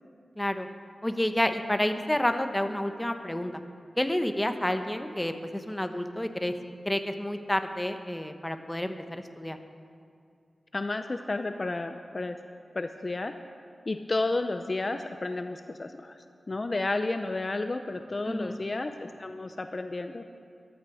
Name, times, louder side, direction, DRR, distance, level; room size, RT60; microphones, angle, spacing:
voice 1, 0.4-0.7 1.0-3.5 4.0-6.5 6.8-9.6 18.3-18.6, left 1 dB, 10° left, 7 dB, 1.0 m, -29 dB
voice 2, 10.7-12.4 12.7-13.3 13.9-20.2, left 2 dB, 40° left, 7 dB, 0.6 m, -32 dB
14.5 x 13.0 x 5.0 m, 2.4 s
cardioid pair, 60°, 0 cm